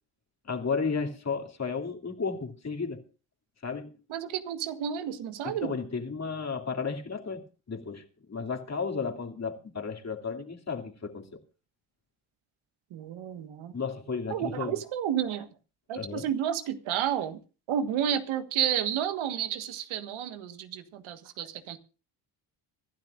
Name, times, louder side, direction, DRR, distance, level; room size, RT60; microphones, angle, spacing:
voice 1, 0.4-3.0 3.6-3.9 5.4-11.4 13.7-14.8 15.9-16.3, left 5 dB, 30° left, 2.7 m, -33 dB
voice 2, 4.1-5.7 12.9-13.7 14.3-15.5 15.9-17.4 17.7-21.8, right 9 dB, 70° right, 1.6 m, -31 dB
25.5 x 12.0 x 2.5 m
hypercardioid pair, 60°, 50 cm